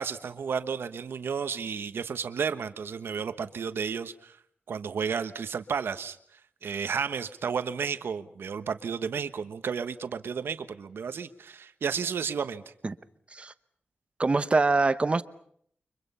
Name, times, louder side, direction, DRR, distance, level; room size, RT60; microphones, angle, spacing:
voice 1, 0.0-4.4 4.7-6.2 6.6-12.6, right 6 dB, 80° right, 1.2 m, -32 dB
voice 2, 14.2-15.2, right 3 dB, 30° right, 0.9 m, -24 dB
29.5 x 24.0 x 5.6 m
wide cardioid pair, 125°, 4 cm